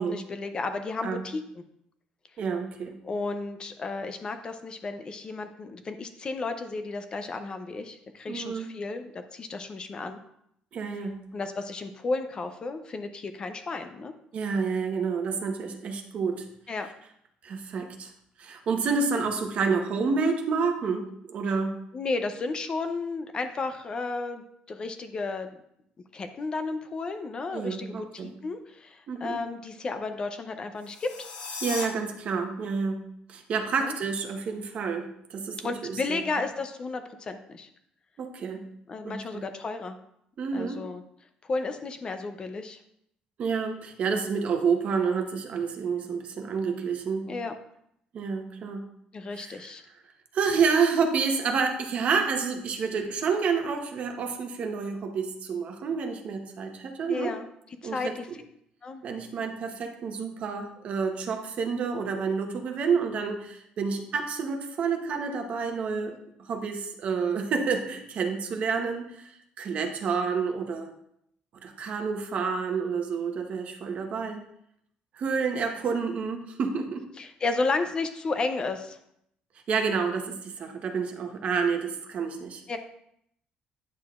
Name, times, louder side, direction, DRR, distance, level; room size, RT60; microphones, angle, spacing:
voice 1, 0.0-1.4 3.0-10.2 11.3-14.1 16.7-16.9 21.9-25.6 26.1-31.3 33.8-33.9 35.6-37.7 38.9-40.0 40.5-41.0 41.4-42.8 47.3-47.5 49.1-49.8 57.1-57.5 57.8-58.3 58.8-59.0 77.2-79.0 82.7-82.8, left 3 dB, 30° left, 8 dB, 0.5 m, -33 dB
voice 2, 2.4-3.0 8.3-8.7 10.7-11.2 14.3-16.4 17.4-18.1 18.4-21.8 27.5-28.3 29.1-29.4 31.6-36.2 38.2-38.6 39.0-39.4 40.4-40.8 43.4-47.3 48.1-48.8 49.3-49.7 50.3-57.3 57.8-58.4 59.0-70.9 71.6-74.4 75.1-77.0 79.7-82.8, right 5 dB, 45° right, 5 dB, 0.9 m, -29 dB
sound 1, 30.8-31.9, left 4 dB, 60° left, 1.5 m, -36 dB
9.4 x 6.5 x 2.4 m, 0.73 s
cardioid pair, 145°, 3 cm